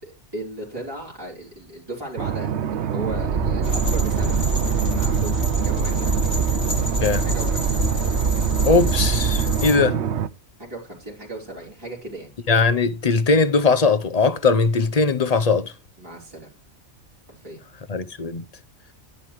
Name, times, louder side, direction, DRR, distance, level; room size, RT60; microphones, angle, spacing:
voice 1, 0.0-4.4 4.9-6.1 7.2-7.9 10.6-12.3 16.0-16.5 17.3-17.6, right 1 dB, 20° right, 4.1 m, -36 dB
sound 1, 2.2-10.3, right 9 dB, 70° right, 1.0 m, -26 dB
sound 2, 3.1-9.6, right 3 dB, 45° right, 1.5 m, -24 dB
sound 3, 3.6-9.8, left 2 dB, 85° left, 2.9 m, -34 dB
voice 2, 8.6-10.0 12.5-15.7 17.9-18.4, left 4 dB, 40° left, 0.8 m, -20 dB
11.0 x 10.5 x 3.1 m
omnidirectional pair, 1.2 m